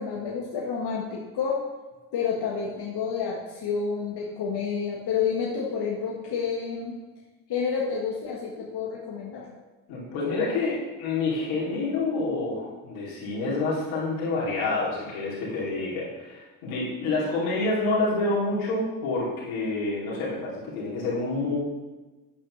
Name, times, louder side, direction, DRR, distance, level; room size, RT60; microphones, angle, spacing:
voice 1, 0.0-1.6 2.1-7.0 7.5-9.4, left 6 dB, 60° left, -3 dB, 1.5 m, -29 dB
voice 2, 9.9-21.5, left 3 dB, 85° left, -6 dB, 2.8 m, -28 dB
8.6 x 7.9 x 3.2 m, 1.2 s
hypercardioid pair, 55°, 44 cm